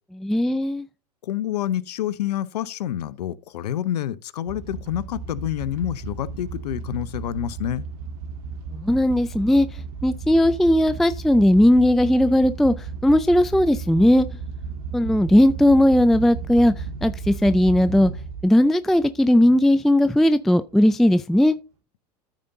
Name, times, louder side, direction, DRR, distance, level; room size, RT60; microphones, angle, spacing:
voice 1, 0.2-0.9 8.7-14.3 14.9-18.1 18.4-21.6, left 1 dB, ahead, 0.3 m, -18 dB
voice 2, 1.2-7.9, left 11 dB, 75° left, 0.8 m, -28 dB
sound 1, 4.5-18.6 19.0-19.3 19.8-19.9 20.1-20.2, right 5 dB, 60° right, 1.8 m, -34 dB
14.0 x 5.1 x 2.7 m
hypercardioid pair, 105°, 21 cm